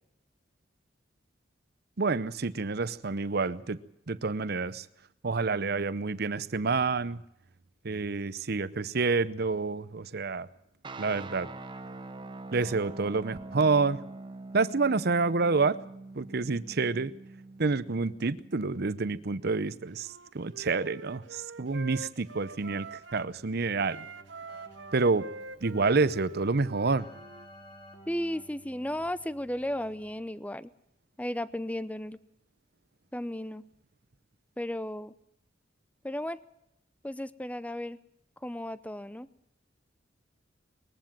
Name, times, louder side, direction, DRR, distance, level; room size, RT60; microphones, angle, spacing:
voice 1, 2.0-3.8 4.1-4.9 5.2-7.2 7.8-10.5 11.0-11.5 12.5-14.0 14.5-15.8 16.1-17.1 17.6-24.1 24.9-25.3 25.6-27.1, right 4 dB, 55° right, 16 dB, 0.7 m, -28 dB
sound 1, 10.8-19.1, right 2 dB, 25° right, 1.1 m, -44 dB
Wind instrument woodwind instrument, 20.0-23.4 23.8-27.5, right 4 dB, 75° right, 1.1 m, -45 dB
Keyboard (musical), 23.1-30.4, equal, 25° left, 3.7 m, -55 dB
voice 2, 28.1-30.7 31.2-32.2 33.1-33.6 34.6-35.1 36.0-36.4 37.0-38.0 38.4-39.3, left 1 dB, 10° left, 16 dB, 0.7 m, -34 dB
21.5 x 15.0 x 8.9 m, 0.80 s
head